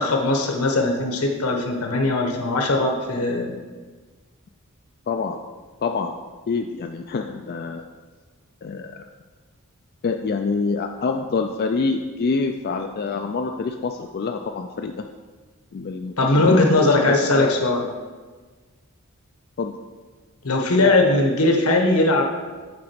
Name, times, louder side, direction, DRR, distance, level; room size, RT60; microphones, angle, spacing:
voice 1, 0.0-3.5 16.2-17.8 20.4-22.2, left 2 dB, 80° left, 2 dB, 1.3 m, -19 dB
voice 2, 5.1-5.4 5.8-6.1 6.5-7.9 8.6-9.0 10.0-15.1 15.7-16.5 17.1-17.6 19.6-19.7, left 4 dB, 45° left, 5 dB, 0.3 m, -26 dB
8.7 x 3.9 x 6.0 m, 1.4 s
head